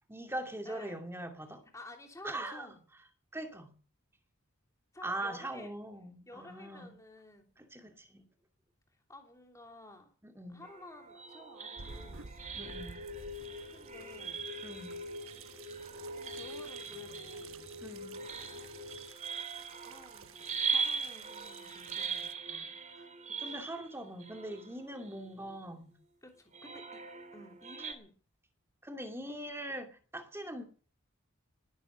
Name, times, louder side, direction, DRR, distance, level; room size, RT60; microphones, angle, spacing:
voice 1, 0.1-1.6 2.2-2.7 3.3-3.7 5.0-6.9 7.6-8.2 10.2-10.6 12.5-13.0 14.6-15.0 17.8-18.2 23.4-25.9 28.8-30.6, right 1 dB, 10° right, 2.5 m, -41 dB
voice 2, 0.6-1.0 1.7-2.8 4.9-5.7 6.3-7.6 9.1-10.1 10.5-12.3 13.5-14.5 16.1-17.5 19.8-23.6 26.2-27.0 27.3-28.1, left 1 dB, 15° left, 3.1 m, -53 dB
sound 1, 10.6-25.5 26.5-27.9, right 5 dB, 35° right, 2.8 m, -41 dB
sound 2, 11.8-22.3, right 5 dB, 80° right, 1.2 m, -53 dB
sound 3, 12.6-19.1, left 2 dB, 55° right, 5.8 m, -46 dB
19.0 x 11.0 x 6.6 m
head